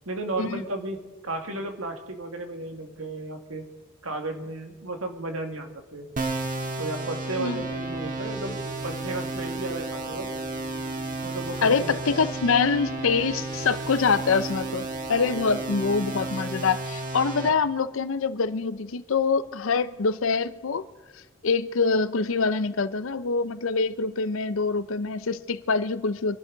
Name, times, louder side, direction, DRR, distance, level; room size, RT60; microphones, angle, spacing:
voice 1, 0.1-3.7 4.0-6.1 6.8-10.3 11.2-12.2, right 2 dB, 85° right, 2.0 m, -34 dB
sound 1, 6.2-17.5, right 3 dB, 40° right, 1.5 m, -32 dB
sound 2, 7.6-16.3, equal, 10° left, 5.4 m, -45 dB
voice 2, 11.6-20.9 21.4-26.4, left 4 dB, 70° left, 0.6 m, -25 dB
25.0 x 12.0 x 3.9 m
head